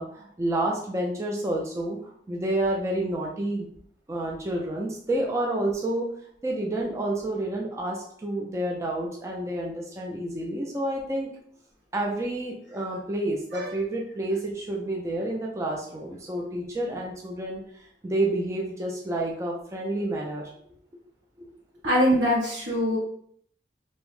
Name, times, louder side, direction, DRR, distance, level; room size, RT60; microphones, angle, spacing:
voice 1, 0.0-3.7 4.1-6.1 6.4-11.3 11.9-20.5 21.4-21.5, right 1 dB, 15° right, -1 dB, 0.3 m, -29 dB
voice 2, 21.8-23.0, equal, 85° right, -5 dB, 1.2 m, -23 dB
2.7 x 2.0 x 3.0 m, 0.65 s
head